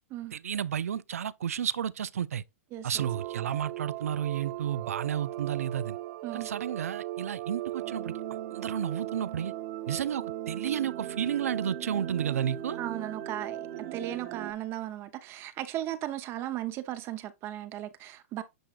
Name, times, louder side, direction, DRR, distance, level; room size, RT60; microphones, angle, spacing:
voice 1, 0.3-2.4 2.8-6.0 6.3-8.1 8.5-9.5 9.9-12.8, right 9 dB, 85° right, 0.4 m, -32 dB
voice 2, 2.7-3.0 6.2-6.5 12.8-18.4, right 13 dB, 35° right, 0.7 m, -36 dB
sound 1, 3.0-14.5, right 13 dB, 50° right, 1.1 m, -38 dB
9.1 x 4.5 x 2.4 m
hypercardioid pair, 125°, 8 cm